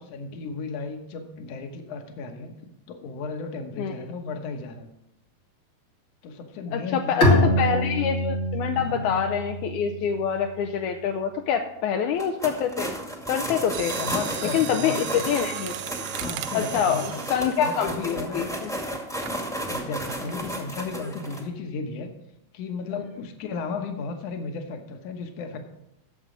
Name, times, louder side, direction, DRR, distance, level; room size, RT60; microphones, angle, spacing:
voice 1, 0.0-4.9 6.2-7.9 8.7-9.1 14.0-15.3 16.2-17.2 17.6-18.4 19.7-22.1 22.5-25.7, left 4 dB, 65° left, 6 dB, 1.7 m, -34 dB
voice 2, 6.7-12.9 13.3-14.0 14.5-15.7 16.5-17.0 17.3-19.0, left 7 dB, 80° left, 4 dB, 1.7 m, -26 dB
Bowed string instrument, 7.2-10.7, equal, 45° left, 0.9 m, -24 dB
sound 1, 12.1-21.4, right 1 dB, ahead, 0.9 m, -33 dB
Mechanisms, 13.6-18.6 19.2-19.4 20.1-20.4 20.7-20.8, right 11 dB, 85° right, 2.4 m, -36 dB
11.0 x 7.5 x 5.1 m, 0.83 s
omnidirectional pair, 4.2 m